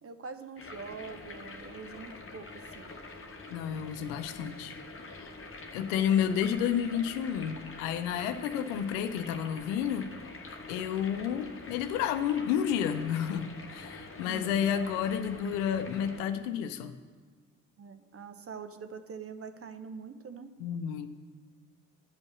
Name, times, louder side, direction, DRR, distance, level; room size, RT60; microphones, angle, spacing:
voice 1, 0.0-3.0 14.3-14.6 17.8-20.5, right 5 dB, 30° right, 9 dB, 0.9 m, -44 dB
sound 1, 0.6-16.2, left 3 dB, 30° left, 1.3 m, -46 dB
voice 2, 3.5-4.8 5.1-5.3 5.7-10.1 10.7-17.0 20.6-21.1, left 8 dB, 70° left, 10 dB, 0.7 m, -31 dB
11.0 x 5.3 x 6.9 m, 1.5 s
figure-of-eight pair, 40°, 45 cm